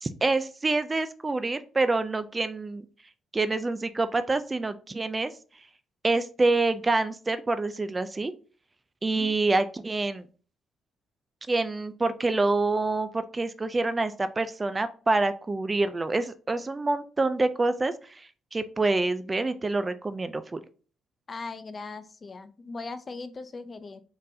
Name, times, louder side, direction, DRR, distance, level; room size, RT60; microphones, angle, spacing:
voice 1, 0.0-2.9 3.3-5.3 6.0-8.3 9.0-10.2 11.5-20.6, right 3 dB, 25° right, 12 dB, 0.4 m, -27 dB
voice 2, 21.3-24.0, left 3 dB, 35° left, 12 dB, 0.4 m, -39 dB
4.0 x 3.8 x 2.7 m, 0.38 s
cardioid pair, 90°, 0 cm